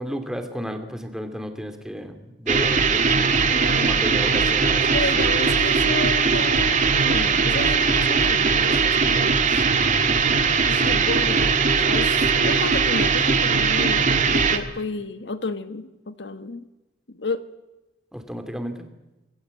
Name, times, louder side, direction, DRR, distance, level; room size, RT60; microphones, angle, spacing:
voice 1, 0.0-3.3 3.8-4.9 18.1-18.7, equal, 5° right, 6 dB, 2.9 m, -32 dB
sound 1, 2.5-14.6, right 5 dB, 45° right, 2.0 m, -20 dB
voice 2, 3.4-3.9 4.9-9.4 10.6-11.6 11.8-12.1 12.4-16.6 17.2-17.4, left 3 dB, 70° left, 11 dB, 1.3 m, -31 dB
27.0 x 21.0 x 8.5 m, 1.0 s
head